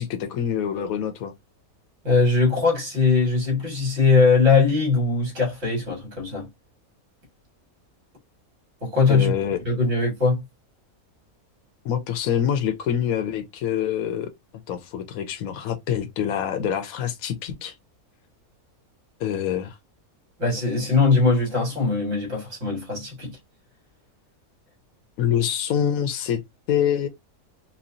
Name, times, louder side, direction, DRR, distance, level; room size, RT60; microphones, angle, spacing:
voice 1, 0.0-1.3 9.1-9.6 11.8-14.3 14.7-17.7 19.2-19.8 25.2-26.4 26.7-27.1, left 9 dB, 75° left, 1.1 m, -25 dB
voice 2, 2.0-6.5 8.8-9.3 9.7-10.4 20.4-23.3, left 4 dB, 55° right, 2.2 m, -20 dB
4.3 x 2.3 x 2.6 m
omnidirectional pair, 1.5 m